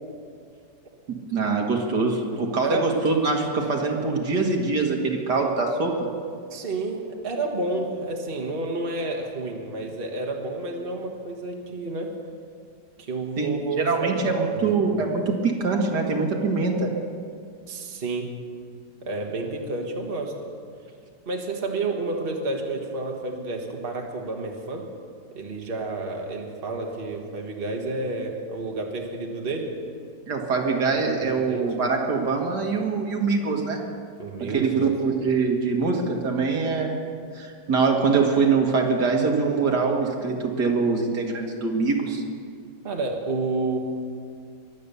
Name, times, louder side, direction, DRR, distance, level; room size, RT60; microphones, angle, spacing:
voice 1, 1.1-6.1 13.4-16.9 30.3-33.8 34.4-36.9 37.3-42.2, right 4 dB, 70° right, 1 dB, 2.2 m, -24 dB
voice 2, 6.5-12.1 13.0-14.7 17.7-18.3 19.0-20.3 21.2-24.8 25.3-29.7 31.2-31.6 34.2-34.9 42.8-43.8, right 2 dB, 35° right, 1 dB, 1.7 m, -30 dB
23.0 x 8.6 x 6.9 m, 2.2 s
omnidirectional pair, 1.9 m